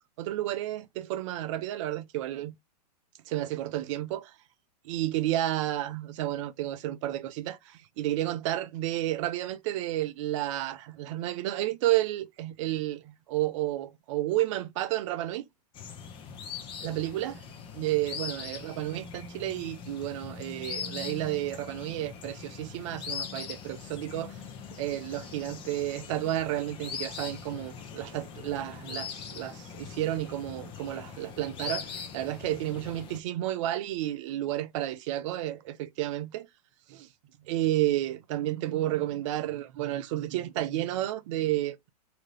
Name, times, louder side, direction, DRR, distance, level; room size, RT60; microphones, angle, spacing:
voice 1, 0.2-2.5 3.3-4.3 4.8-15.5 16.8-17.3 17.7-24.4 24.8-36.5 36.9-37.1 37.4-41.9, right 14 dB, 50° right, 0.4 m, -31 dB
sound 1, 15.7-33.2, left 6 dB, 25° left, 0.6 m, -41 dB
2.8 x 2.3 x 3.1 m
hypercardioid pair, 120°, 21 cm